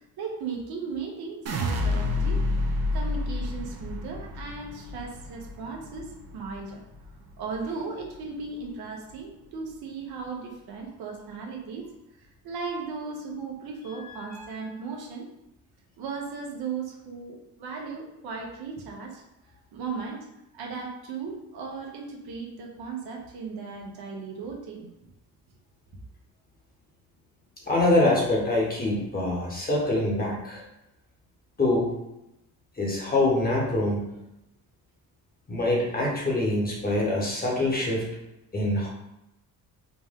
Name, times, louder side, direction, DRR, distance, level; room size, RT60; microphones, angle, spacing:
voice 1, 0.2-2.4 2.9-6.8 7.4-11.9 12.2-15.3 16.0-19.2 19.7-20.2 20.5-24.9, right 4 dB, 80° right, -1 dB, 1.0 m, -36 dB
sound 1, 1.5-7.6 8.0-8.6, left 2 dB, 40° right, 0.6 m, -30 dB
voice 2, 27.6-30.6 31.6-32.0 32.8-34.0 35.5-38.1 38.5-38.9, left 2 dB, 25° left, -3 dB, 1.2 m, -24 dB
4.2 x 2.2 x 3.6 m, 0.88 s
cardioid pair, 110°, 37 cm